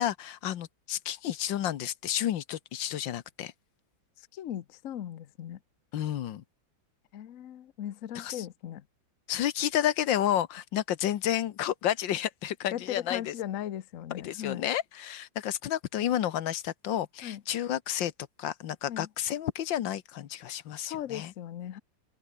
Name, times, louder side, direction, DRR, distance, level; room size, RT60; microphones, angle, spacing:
voice 1, 0.0-3.5 5.9-6.4 8.1-8.4 9.3-13.3 14.1-18.1 18.4-21.3, left 11 dB, 80° left, 1.7 m, -31 dB
voice 2, 4.2-5.6 7.1-8.8 12.7-14.6 17.2-17.4 18.9-19.1 20.9-21.8, left 11 dB, 55° left, 1.0 m, -38 dB
open air
omnidirectional pair, 2.0 m